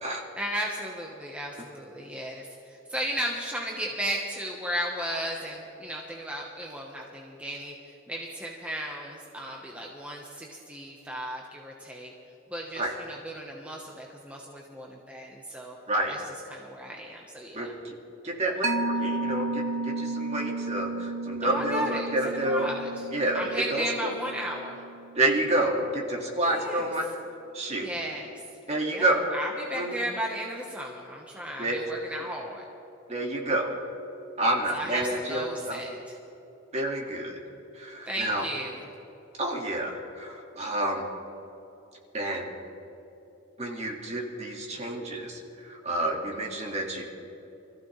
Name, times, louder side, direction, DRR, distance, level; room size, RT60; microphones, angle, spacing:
voice 1, 0.4-12.1 12.5-15.8 16.1-16.2 16.5-17.7 21.4-22.9 23.3-24.8 26.4-26.8 27.8-28.3 28.9-32.6 34.7-36.1 38.1-38.8, right 1 dB, 5° right, -2 dB, 1.2 m, -35 dB
voice 2, 17.5-18.0 18.2-22.7 23.1-23.4 23.7-23.9 25.2-27.1 27.5-27.9 28.7-29.3 29.7-30.0 31.6-31.8 33.1-33.7 34.4-35.8 36.7-37.4 37.7-38.5 39.4-41.1 42.1-42.5 43.6-47.0, right 1 dB, 35° right, 0 dB, 2.0 m, -29 dB
Mallet percussion, 18.6-25.7, right 3 dB, 85° right, 0.8 m, -33 dB
25.0 x 15.0 x 3.3 m, 3.0 s
head